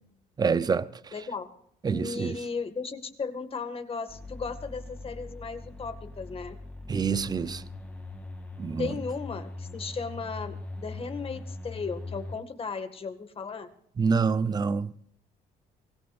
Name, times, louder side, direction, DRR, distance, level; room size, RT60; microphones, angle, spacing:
voice 1, 0.4-0.9 1.8-2.3 6.9-7.6 8.6-8.9 14.0-14.9, right 5 dB, 25° right, 0.7 m, -26 dB
voice 2, 1.1-1.5 1.9-6.5 8.8-13.7, left 4 dB, 35° left, 2.0 m, -36 dB
sound 1, 4.1-12.4, left 2 dB, 10° left, 2.6 m, -41 dB
23.5 x 17.5 x 2.6 m
cardioid pair, 110°, 17 cm